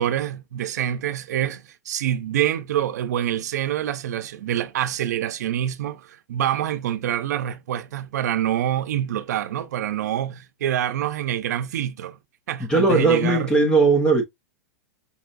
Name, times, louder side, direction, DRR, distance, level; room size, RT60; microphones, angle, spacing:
voice 1, 0.0-12.2 12.5-13.5, right 11 dB, 75° right, 0.6 m, -26 dB
voice 2, 12.7-14.2, right 3 dB, 10° left, 0.8 m, -18 dB
5.4 x 2.3 x 2.6 m
supercardioid pair, 170°, 9 cm